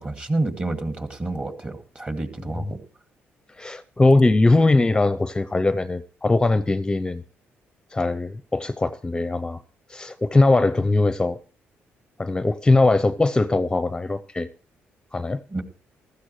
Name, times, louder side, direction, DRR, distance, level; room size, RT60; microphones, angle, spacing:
voice 1, 0.0-2.8 15.5-15.6, right 2 dB, 25° right, 2.3 m, -29 dB
voice 2, 3.6-7.2 7.9-9.6 9.9-11.4 12.2-14.5 15.1-15.4, left 2 dB, 15° left, 0.6 m, -20 dB
15.0 x 13.5 x 3.2 m
cardioid pair, 85°, 4 cm